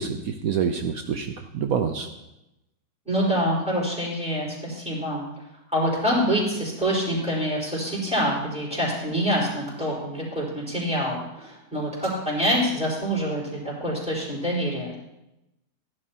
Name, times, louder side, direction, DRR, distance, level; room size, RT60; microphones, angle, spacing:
voice 1, 0.0-2.1, right 7 dB, 70° right, 6 dB, 0.8 m, -27 dB
voice 2, 3.1-5.2 5.7-14.9, equal, 5° right, -5 dB, 4.3 m, -26 dB
16.0 x 11.0 x 2.8 m, 0.91 s
omnidirectional pair, 2.1 m